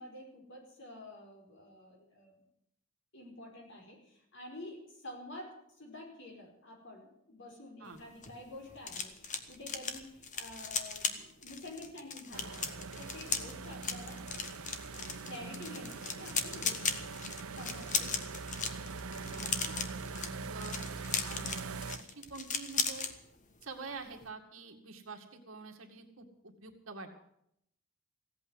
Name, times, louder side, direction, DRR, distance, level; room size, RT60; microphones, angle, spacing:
voice 1, 0.0-2.4 3.1-14.2 15.2-17.1 17.5-18.5, left 1 dB, 60° left, 1 dB, 5.0 m, -49 dB
sound 1, 7.9-23.1 23.5-23.7 24.0-24.3, left 6 dB, 35° left, 1.3 m, -37 dB
sound 2, 12.3-22.0, right 4 dB, 85° right, 0.8 m, -42 dB
voice 2, 19.3-19.8 20.1-20.9 21.3-23.1 23.6-27.2, right 4 dB, 65° right, 3 dB, 2.2 m, -47 dB
16.5 x 8.5 x 9.8 m, 0.77 s
head